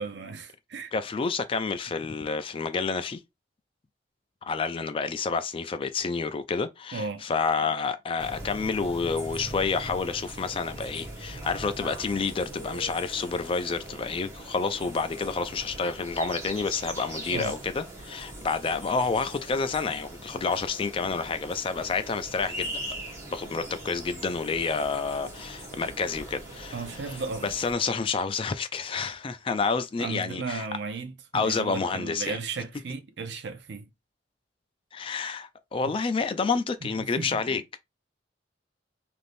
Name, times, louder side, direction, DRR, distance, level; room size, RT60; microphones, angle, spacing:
voice 1, 0.0-0.9 6.9-7.3 17.3-17.6 26.7-27.5 30.0-33.9 37.2-37.6, right 4 dB, 65° right, 0.5 m, -35 dB
voice 2, 0.9-3.2 4.4-23.0 23.3-27.2 27.4-30.7 31.3-32.4 34.9-37.8, left 4 dB, 30° left, 0.3 m, -29 dB
sound 1, 8.2-27.7, right 1 dB, 15° right, 1.0 m, -41 dB
3.3 x 2.6 x 2.5 m
head